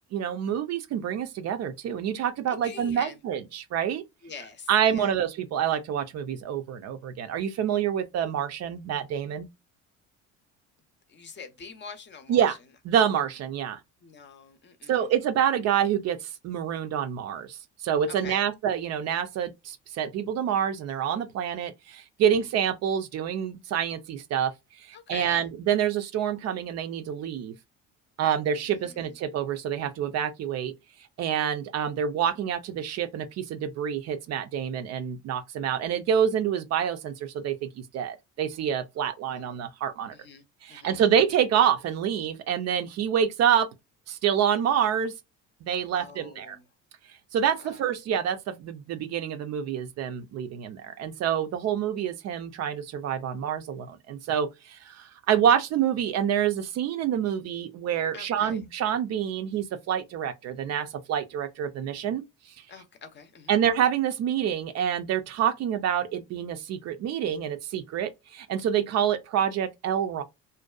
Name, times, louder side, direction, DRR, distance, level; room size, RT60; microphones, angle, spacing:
voice 1, 0.1-4.0 4.7-9.5 12.3-12.6 12.8-13.8 14.9-24.5 24.8-27.5 28.2-30.7 31.2-40.1 40.6-43.7 44.1-45.1 45.6-46.6 47.3-62.2 63.5-70.2, right 9 dB, 55° right, 0.4 m, -27 dB
voice 2, 2.5-3.2 4.2-5.2 11.1-12.6 14.0-15.1 18.1-18.5 24.9-25.5 28.5-29.2 39.0-39.6 40.1-41.0 45.9-46.6 47.6-47.9 58.1-58.6 62.7-63.6, left 5 dB, 35° left, 0.6 m, -45 dB
2.6 x 2.2 x 2.3 m
supercardioid pair, 90°, 33 cm